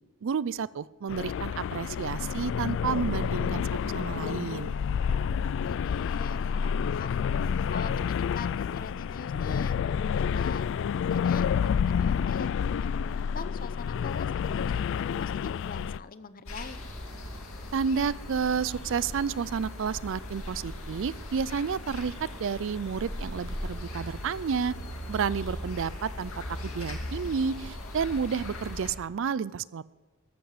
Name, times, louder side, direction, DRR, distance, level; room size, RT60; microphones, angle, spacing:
voice 1, 0.2-4.8 17.7-24.8 25.1-29.8, right 6 dB, 60° right, 20 dB, 0.4 m, -31 dB
sound 1, 1.1-16.0, left 7 dB, 60° left, 0.3 m, -29 dB
voice 2, 5.4-12.5 12.8-16.8, left 4 dB, 40° left, 13 dB, 0.7 m, -43 dB
sound 2, 16.5-28.9, left 1 dB, 75° left, 2.4 m, -39 dB
14.0 x 13.5 x 4.9 m, 1.3 s
head